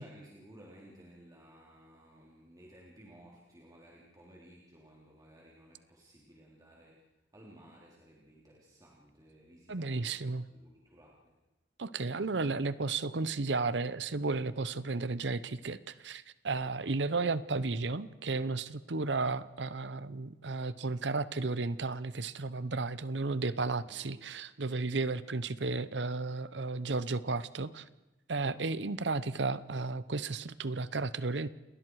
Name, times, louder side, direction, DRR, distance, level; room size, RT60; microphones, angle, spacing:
voice 1, 0.0-7.1 7.3-11.4 16.6-17.2 23.8-24.1 28.5-28.7, equal, 20° right, -4 dB, 3.4 m, -57 dB
voice 2, 9.7-10.5 11.8-27.9 28.3-31.5, right 3 dB, 70° right, 16 dB, 0.8 m, -33 dB
29.0 x 20.0 x 4.8 m, 1.0 s
head